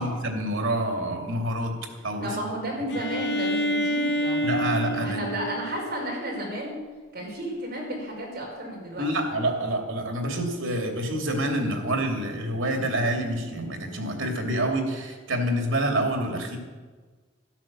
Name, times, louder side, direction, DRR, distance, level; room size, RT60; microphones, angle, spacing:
voice 1, 0.0-1.7 2.0-2.4 4.4-5.2 9.0-16.6, right 1 dB, 85° right, 3 dB, 2.7 m, -27 dB
voice 2, 2.2-4.4 4.9-6.8 7.1-9.1, right 1 dB, 50° right, -1 dB, 5.3 m, -32 dB
Bowed string instrument, 2.9-6.6, equal, 60° left, 2.2 m, -28 dB
12.0 x 11.5 x 7.5 m, 1.4 s
head